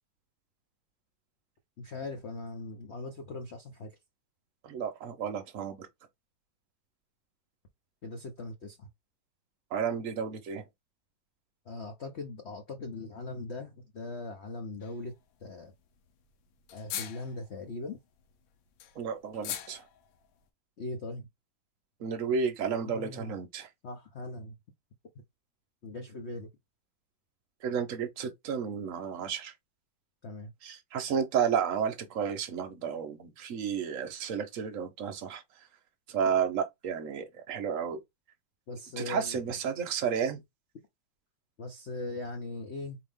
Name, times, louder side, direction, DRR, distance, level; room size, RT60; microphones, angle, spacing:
voice 1, 1.8-3.9 8.0-8.9 11.7-15.1 15.4-15.7 16.7-18.0 20.8-21.3 22.8-23.4 23.8-24.5 25.8-26.5 30.2-30.5 38.7-39.4 41.6-43.0, left 2 dB, 50° left, 0.8 m, -40 dB
voice 2, 4.6-5.9 9.7-10.6 19.0-19.8 22.0-23.7 27.6-29.5 30.6-35.4 36.1-38.0 39.0-40.4, right 7 dB, 55° right, 0.9 m, -32 dB
sound 1, 14.8-15.2 15.5-15.6 15.7-15.8 16.1-16.2 16.6-17.6 18.2-20.3, left 10 dB, 90° left, 1.5 m, -41 dB
4.5 x 2.9 x 3.5 m
omnidirectional pair, 2.1 m